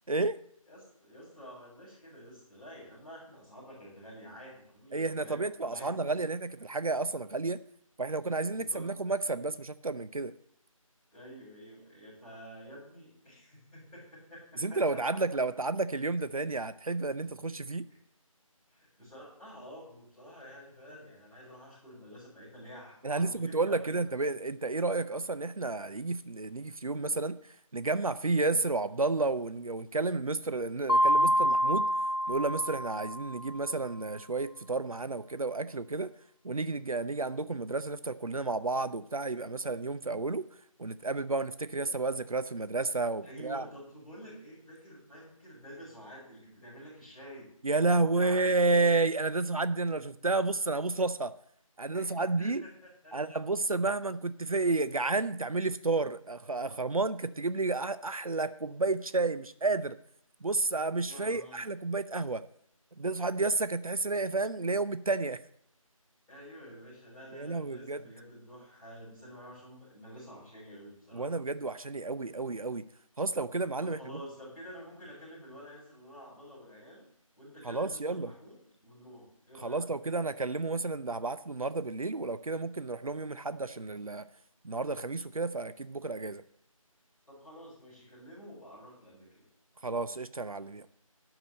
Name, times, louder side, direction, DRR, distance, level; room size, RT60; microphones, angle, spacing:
voice 1, 0.1-0.4 4.9-7.6 8.0-10.3 14.6-17.8 23.0-27.4 27.7-31.9 32.3-36.1 36.4-40.4 40.8-43.7 47.6-51.3 51.8-52.6 53.1-60.0 60.4-62.4 63.0-65.4 67.3-68.0 71.1-72.9 73.2-74.0 77.6-78.3 79.6-84.3 84.6-86.4 89.8-90.9, right 3 dB, 80° right, 13 dB, 0.6 m, -31 dB
voice 2, 0.7-6.1 8.5-8.9 11.1-14.8 17.9-18.0 18.7-24.0 43.2-48.4 51.9-53.4 61.0-61.6 66.3-71.3 73.8-77.1 77.4-78.5 78.8-79.8 87.3-89.5, equal, 5° left, -12 dB, 4.6 m, -49 dB
Mallet percussion, 30.9-33.5, equal, 40° left, 0.5 m, -27 dB
12.0 x 4.9 x 7.6 m, 0.66 s
figure-of-eight pair, 165°, 18 cm